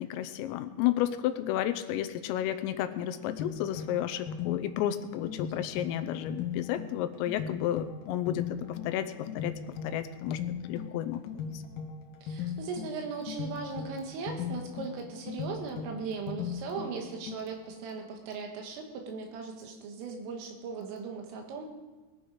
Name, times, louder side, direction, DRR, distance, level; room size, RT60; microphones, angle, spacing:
voice 1, 0.0-9.5 9.8-10.4 10.7-11.6, left 12 dB, 90° left, 10 dB, 3.4 m, -32 dB
sound 1, 2.9-17.8, left 7 dB, 65° left, 2.2 m, -39 dB
voice 2, 12.2-21.7, right 5 dB, 75° right, 3 dB, 4.3 m, -38 dB
20.5 x 11.0 x 5.0 m, 1.3 s
omnidirectional pair, 5.9 m